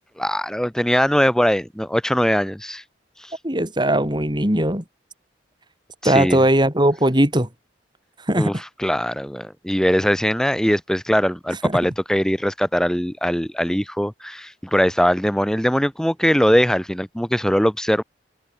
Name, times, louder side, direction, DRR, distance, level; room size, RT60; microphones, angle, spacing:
voice 1, 0.2-2.8 3.2-3.3 6.0-6.4 8.4-18.0, equal, 5° left, 1.8 m, -21 dB
voice 2, 3.4-4.8 6.0-7.5 8.3-8.6 11.6-11.8, right 1 dB, 25° right, 6.2 m, -19 dB
head